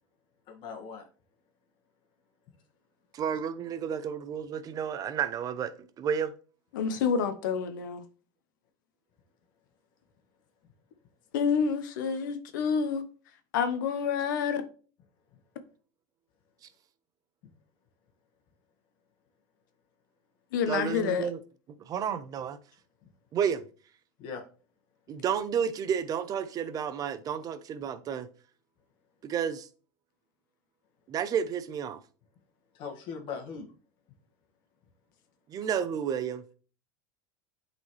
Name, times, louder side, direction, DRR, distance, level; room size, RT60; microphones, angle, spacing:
voice 1, 0.5-1.0 23.0-23.1 24.2-24.4 32.7-33.7, left 6 dB, 55° left, 1.6 m, -39 dB
voice 2, 3.1-6.3 20.7-21.4 21.8-22.6 23.3-23.7 25.1-28.3 29.2-29.7 31.1-32.0 35.5-36.4, right 8 dB, 35° right, 0.7 m, -31 dB
voice 3, 6.7-8.0 11.3-13.1 13.5-14.6 20.5-21.3, left 6 dB, 85° left, 0.9 m, -28 dB
8.3 x 4.1 x 3.1 m
supercardioid pair, 115°, 10 cm